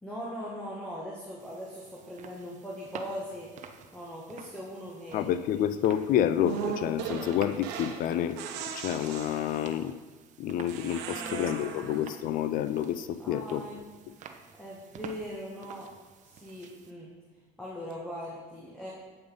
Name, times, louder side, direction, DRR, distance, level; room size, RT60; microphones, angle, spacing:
voice 1, 0.0-3.5 3.9-5.4 10.4-10.6 11.0-11.8 13.2-13.8 14.5-15.9 16.2-17.1 17.6-18.9, equal, 5° left, -5 dB, 1.4 m, -40 dB
sound 1, 1.4-16.9, right 7 dB, 45° right, 0.7 m, -50 dB
voice 2, 5.1-8.4 8.8-9.9 10.4-13.6, left 10 dB, 55° left, 12 dB, 0.4 m, -29 dB
sound 2, 6.4-8.0 8.4-9.8 10.7-12.1, right 7 dB, 85° right, 0.9 m, -37 dB
8.0 x 5.2 x 5.2 m, 1.3 s
cardioid pair, 115°, 17 cm